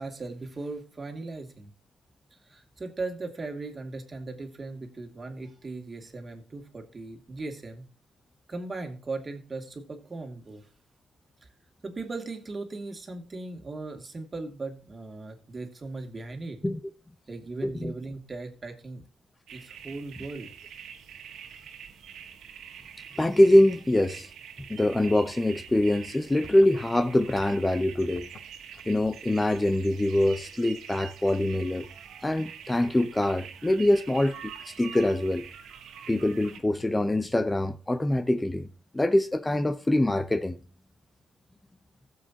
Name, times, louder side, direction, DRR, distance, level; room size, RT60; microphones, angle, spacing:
voice 1, 0.0-1.7 2.4-7.8 8.5-10.7 11.8-16.6 17.3-19.0 19.5-20.5, right 3 dB, 30° right, 2.6 m, -38 dB
voice 2, 17.6-17.9 23.2-24.3 24.7-28.3 28.9-31.9 32.2-35.4 36.1-38.7 38.9-40.6, left 1 dB, 15° left, 0.9 m, -24 dB
sound 1, 19.5-36.6, right 8 dB, 75° right, 1.8 m, -45 dB
sound 2, 25.7-27.7 28.0-28.4 28.7-29.2 29.5-29.7 30.1-30.2 30.9-31.3, left 3 dB, 50° left, 3.9 m, -51 dB
15.5 x 7.7 x 2.9 m
cardioid pair, 90°, 0 cm